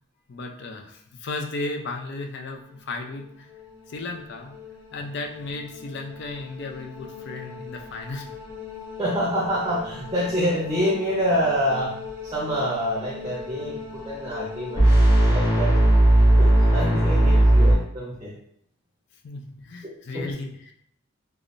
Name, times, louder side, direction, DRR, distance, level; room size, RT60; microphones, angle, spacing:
voice 1, 0.3-3.5 3.9-4.5 4.9-8.3 17.2-17.5 19.2-20.7, left 2 dB, 55° left, 3 dB, 0.4 m, -35 dB
sound 1, 4.2-4.3 4.5-4.7 5.1-17.7, right 1 dB, 20° left, 1.4 m, -22 dB
voice 2, 9.0-14.9 15.3-15.9 16.4-18.3 19.8-20.3, equal, 20° right, -4 dB, 0.6 m, -27 dB
3.4 x 2.3 x 2.5 m, 0.70 s
head